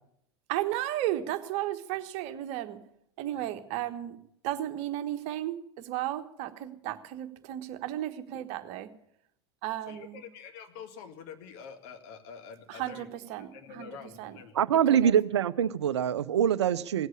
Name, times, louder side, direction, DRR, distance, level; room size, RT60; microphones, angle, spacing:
voice 1, 0.5-2.8 3.2-4.2 4.4-8.9 9.6-10.2 12.7-13.5 13.7-13.9 14.2-14.3 14.9-15.1, right 13 dB, 50° right, 9 dB, 1.3 m, -34 dB
voice 2, 9.9-15.3, left 6 dB, 55° left, 6 dB, 2.0 m, -47 dB
voice 3, 14.6-17.1, right 9 dB, 75° right, 16 dB, 0.6 m, -24 dB
18.0 x 8.0 x 8.6 m, 0.73 s
figure-of-eight pair, 80°, 14 cm